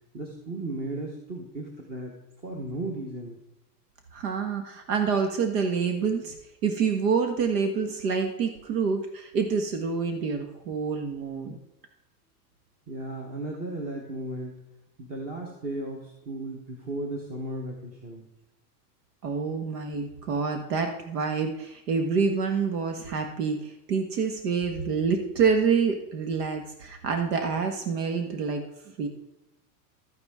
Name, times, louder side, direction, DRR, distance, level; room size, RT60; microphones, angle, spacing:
voice 1, 0.1-3.4 12.9-14.6 15.0-18.3, right 2 dB, 20° right, 0 dB, 1.2 m, -35 dB
voice 2, 4.1-6.3 6.6-11.6 19.2-28.6 29.0-29.1, right 5 dB, 75° right, 5 dB, 1.6 m, -27 dB
13.0 x 9.8 x 3.7 m, 0.93 s
supercardioid pair, 175°, 48 cm